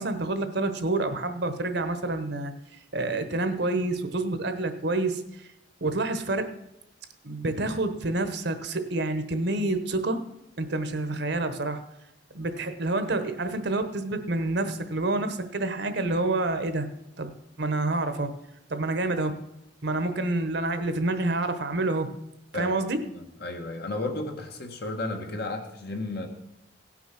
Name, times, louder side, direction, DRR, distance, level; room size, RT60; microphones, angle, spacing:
voice 1, 0.0-2.5 2.9-5.5 5.8-6.5 7.2-10.2 10.6-11.8 12.3-16.9 17.2-17.3 17.6-18.3 18.7-19.4 19.8-22.1 22.5-23.0, right 2 dB, 60° right, 9 dB, 1.1 m, -28 dB
voice 2, 23.1-26.3, left 2 dB, 55° left, 4 dB, 1.6 m, -33 dB
17.0 x 6.1 x 5.8 m, 0.84 s
head